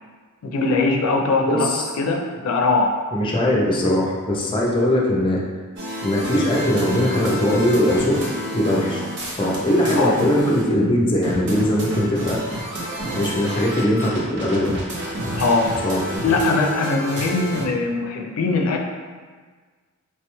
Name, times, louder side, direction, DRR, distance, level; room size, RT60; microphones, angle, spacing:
voice 1, 0.4-3.0 9.9-10.1 15.4-15.8 16.2-18.8, left 3 dB, 85° left, 2 dB, 0.4 m, -21 dB
voice 2, 1.5-1.8 3.1-5.4 6.0-8.1 8.5-9.0 9.4-12.4 13.1-14.7 15.8-16.0, left 1 dB, 25° left, -3 dB, 0.4 m, -20 dB
sound 1, 5.8-10.6 11.2-17.6, right 1 dB, 55° right, 0.6 m, -29 dB
3.2 x 2.2 x 2.9 m, 1.5 s
head